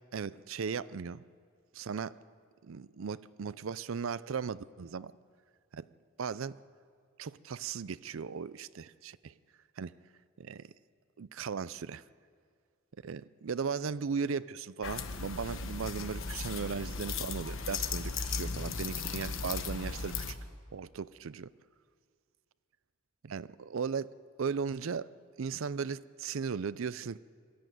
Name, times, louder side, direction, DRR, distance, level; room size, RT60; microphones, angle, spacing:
voice 1, 0.1-1.2 1.7-2.2 2.6-5.1 5.7-5.9 6.2-6.6 7.2-9.3 9.8-9.9 10.4-10.7 11.2-12.0 13.0-20.4 20.7-21.5 23.2-24.1 24.4-25.1 25.4-27.2, right 6 dB, 65° right, 17 dB, 0.5 m, -37 dB
sound 1, 14.8-20.3, left 4 dB, 65° left, 1.3 m, -36 dB
22.0 x 14.0 x 9.2 m, 2.1 s
head